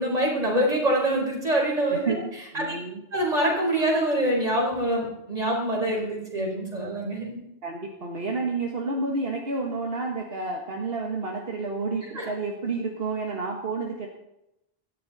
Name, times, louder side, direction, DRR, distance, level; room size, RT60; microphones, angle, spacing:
voice 1, 0.0-2.2 2.5-2.8 3.1-7.4 12.1-12.3, right 1 dB, 40° right, -1 dB, 4.5 m, -25 dB
voice 2, 1.9-3.0 7.6-14.1, right 3 dB, 70° right, 0 dB, 1.9 m, -30 dB
17.5 x 13.5 x 4.1 m, 0.86 s
omnidirectional pair, 1.0 m